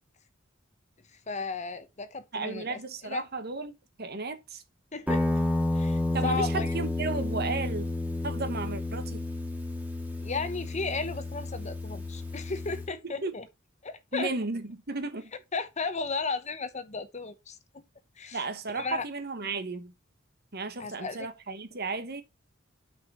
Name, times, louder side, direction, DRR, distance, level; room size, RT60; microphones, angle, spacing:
voice 1, 1.3-3.3 4.9-5.2 5.7-6.7 10.2-13.5 13.8-14.3 15.5-17.8 18.2-18.4 18.7-19.0 20.8-21.2, left 4 dB, 35° left, 0.9 m, -34 dB
voice 2, 2.3-3.7 4.0-4.6 6.1-7.9 8.2-9.2 13.0-13.3 14.1-15.3 18.3-19.9 20.5-22.2, right 3 dB, 55° right, 1.2 m, -34 dB
Guitar, 5.1-12.9, left 2 dB, 10° right, 1.9 m, -31 dB
6.1 x 5.3 x 5.4 m
head